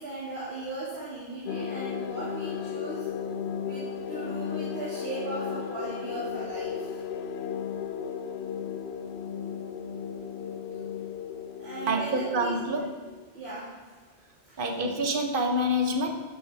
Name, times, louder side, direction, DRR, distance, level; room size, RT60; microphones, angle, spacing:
voice 1, 0.0-3.1 3.6-7.0 11.6-12.8 13.3-13.7, right 2 dB, 70° right, -8 dB, 2.7 m, -37 dB
sound 1, 1.5-13.2, left 7 dB, 75° left, 0.9 m, -35 dB
voice 2, 11.9-12.9 14.6-16.1, equal, 55° right, 4 dB, 1.3 m, -27 dB
13.0 x 9.7 x 3.5 m, 1.3 s
omnidirectional pair, 1.1 m